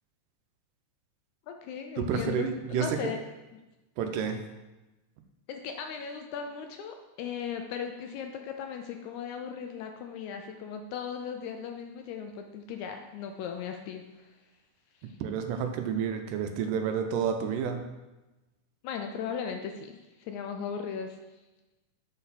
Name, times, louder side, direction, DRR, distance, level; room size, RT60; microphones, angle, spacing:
voice 1, 1.5-3.2 5.5-14.3 15.0-15.1 18.8-21.2, left 7 dB, 80° left, 4 dB, 1.8 m, -37 dB
voice 2, 2.0-3.0 4.0-4.4 15.2-17.8, right 7 dB, 90° right, 5 dB, 2.2 m, -30 dB
7.6 x 4.0 x 4.1 m, 1.1 s
omnidirectional pair, 3.7 m